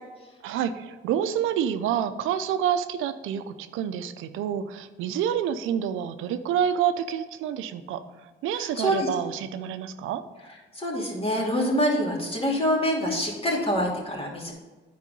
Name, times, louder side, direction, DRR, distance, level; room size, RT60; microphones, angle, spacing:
voice 1, 0.4-8.0 8.4-10.2, right 9 dB, 90° right, 10 dB, 0.6 m, -28 dB
voice 2, 8.6-9.1 10.7-14.5, equal, 30° left, -2 dB, 2.5 m, -26 dB
9.1 x 4.8 x 5.3 m, 1.2 s
cardioid pair, 90°, 20 cm